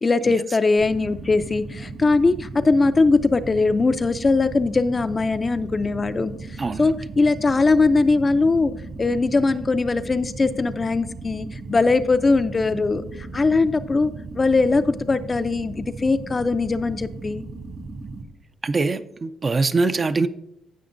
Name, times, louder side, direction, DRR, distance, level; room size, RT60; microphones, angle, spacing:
voice 1, 0.0-8.7 9.0-17.4, left 3 dB, 30° left, 0.4 m, -21 dB
sound 1, 0.8-18.2, right 3 dB, 60° right, 2.0 m, -36 dB
voice 2, 6.6-6.9 18.6-20.3, right 3 dB, 35° right, 0.4 m, -23 dB
15.5 x 5.9 x 2.5 m
cardioid pair, 90°, 0 cm